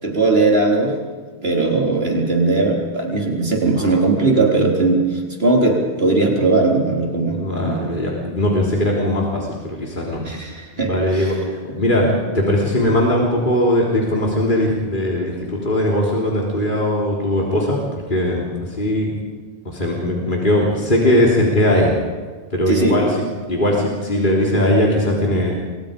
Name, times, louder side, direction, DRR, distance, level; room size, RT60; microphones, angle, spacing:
voice 1, 0.0-0.9 1.4-7.9 10.2-11.4 22.7-23.0, right 3 dB, 65° right, 0 dB, 4.1 m, -19 dB
voice 2, 7.3-10.2 10.8-19.1 19.7-21.9 22.5-23.2 23.5-25.6, left 1 dB, 50° left, -2 dB, 3.7 m, -19 dB
28.5 x 23.0 x 5.2 m, 1.5 s
omnidirectional pair, 1.1 m